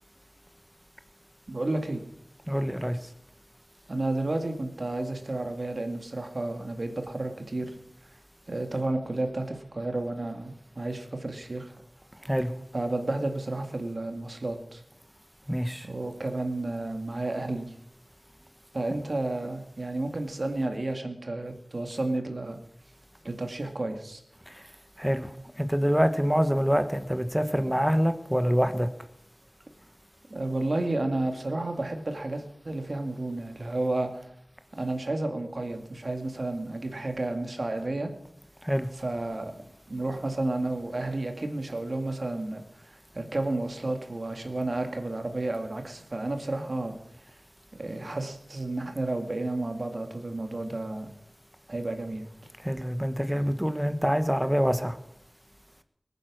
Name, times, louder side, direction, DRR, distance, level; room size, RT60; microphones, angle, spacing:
voice 1, 1.5-2.0 3.9-7.7 8.5-11.7 12.7-14.8 15.8-17.7 18.7-22.6 23.2-24.2 30.3-34.3 34.7-38.1 39.0-39.6 39.9-46.9 47.8-51.1 51.7-52.2, right 2 dB, 60° right, 6 dB, 2.1 m, -31 dB
voice 2, 2.5-3.0 12.2-12.5 15.5-15.9 24.5-24.6 25.0-28.9 38.6-38.9 52.6-55.0, equal, 5° right, 9 dB, 1.2 m, -26 dB
21.0 x 9.3 x 6.4 m, 0.83 s
wide cardioid pair, 50°, 0 cm